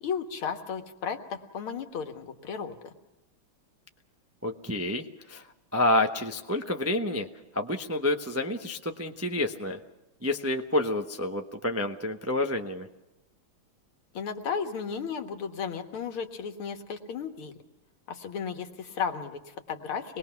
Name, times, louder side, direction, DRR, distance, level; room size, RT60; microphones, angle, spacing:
voice 1, 0.0-2.9 14.1-17.5 18.1-20.2, left 6 dB, 90° left, 6 dB, 2.3 m, -34 dB
voice 2, 4.4-5.4 5.7-7.3 7.5-9.8 10.2-12.9, left 1 dB, 20° right, 4 dB, 0.4 m, -28 dB
26.0 x 20.5 x 5.9 m, 1.0 s
omnidirectional pair, 2.3 m